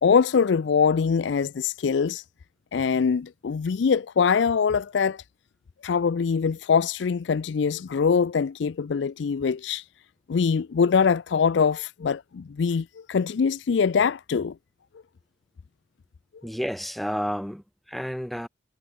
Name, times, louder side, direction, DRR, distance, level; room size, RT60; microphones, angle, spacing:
voice 1, 0.0-2.2 2.7-5.2 5.8-9.8 10.3-14.5, left 6 dB, 65° left, 0.4 m, -23 dB
voice 2, 16.4-18.5, equal, ahead, 2.0 m, -31 dB
head